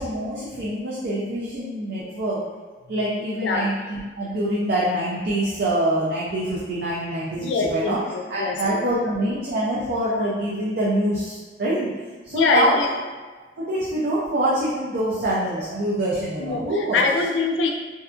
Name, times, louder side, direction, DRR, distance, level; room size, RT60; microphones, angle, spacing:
voice 1, 0.0-2.4 2.9-8.0 8.3-11.9 12.2-13.0 13.6-17.0, right 1 dB, 65° right, -7 dB, 0.5 m, -25 dB
voice 2, 7.4-8.9 12.3-12.9 16.4-17.7, left 4 dB, 85° left, 1 dB, 0.4 m, -23 dB
2.6 x 2.3 x 2.4 m, 1.3 s
head